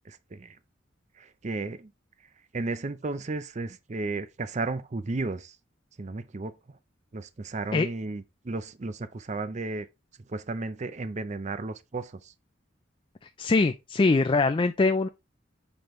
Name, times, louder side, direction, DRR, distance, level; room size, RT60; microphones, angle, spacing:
voice 1, 0.1-0.6 1.2-1.9 2.5-5.6 6.0-6.5 7.1-9.9 10.3-12.3, right 3 dB, 40° right, 0.5 m, -34 dB
voice 2, 13.4-15.1, left 3 dB, 25° left, 0.3 m, -23 dB
6.1 x 5.2 x 3.1 m
head